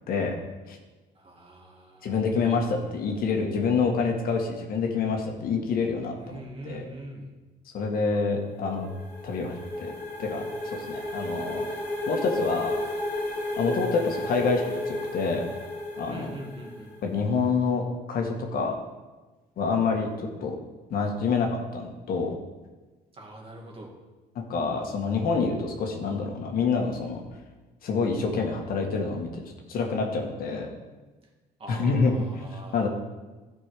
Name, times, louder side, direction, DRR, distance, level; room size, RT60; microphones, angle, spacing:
voice 1, 1.2-2.4 6.2-7.3 14.1-14.3 16.1-16.9 23.1-23.9 31.6-32.9, right 1 dB, 35° right, 0 dB, 2.1 m, -43 dB
voice 2, 2.0-6.4 6.6-6.9 7.7-8.9 9.2-9.9 10.2-11.7 12.1-12.8 13.6-15.4 15.9-16.3 17.0-18.7 19.6-20.6 20.9-22.3 24.5-27.2 27.8-29.4 29.7-30.7 31.7-32.1 32.5-32.9, left 4 dB, 60° left, 2 dB, 1.6 m, -27 dB
sound 1, 8.4-17.1, left 1 dB, 10° left, 2.7 m, -33 dB
12.5 x 5.4 x 5.0 m, 1.2 s
cardioid pair, 110°, 17 cm